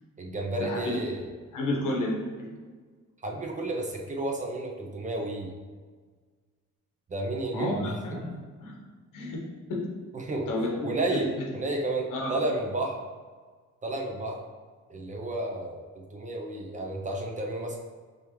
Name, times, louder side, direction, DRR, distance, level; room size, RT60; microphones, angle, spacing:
voice 1, 0.2-1.3 3.2-5.5 7.1-8.0 10.1-10.5 10.8-13.0 13.8-14.4 14.9-15.8 16.1-17.8, right 2 dB, 25° right, 0 dB, 0.6 m, -31 dB
voice 2, 1.5-2.6 7.5-8.8 9.1-9.4 9.7-9.9 10.5-11.3 12.1-12.4, left 1 dB, 90° left, -1 dB, 1.2 m, -31 dB
5.2 x 3.4 x 3.0 m, 1.5 s
cardioid pair, 140°, 31 cm